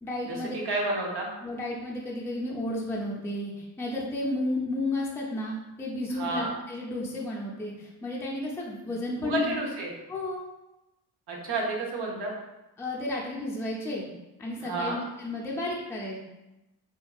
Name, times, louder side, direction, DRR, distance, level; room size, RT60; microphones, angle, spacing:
voice 1, 0.0-0.5 1.4-9.5 10.1-10.4 12.8-14.1 14.4-16.2, left 2 dB, 5° left, -3 dB, 0.5 m, -32 dB
voice 2, 0.6-1.3 6.2-6.5 8.8-8.9 9.2-9.9 11.3-12.3 14.6-15.0, right 2 dB, 65° right, -1 dB, 0.8 m, -30 dB
2.7 x 2.4 x 2.3 m, 0.97 s
supercardioid pair, 55°, 44 cm